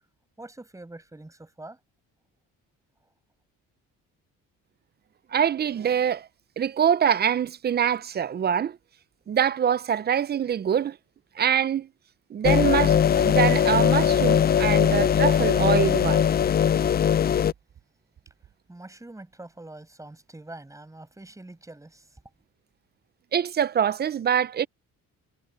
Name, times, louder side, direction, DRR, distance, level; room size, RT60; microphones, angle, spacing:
voice 1, 0.4-1.8 18.7-22.2, right 2 dB, 10° right, 5.7 m, -44 dB
voice 2, 5.3-6.3 6.6-8.8 9.3-11.0 11.4-11.9 12.3-16.2 23.3-24.7, right 8 dB, 30° right, 0.4 m, -24 dB
sound 1, 12.4-17.5, left 8 dB, 30° left, 0.4 m, -20 dB
cardioid pair, 140°, 33 cm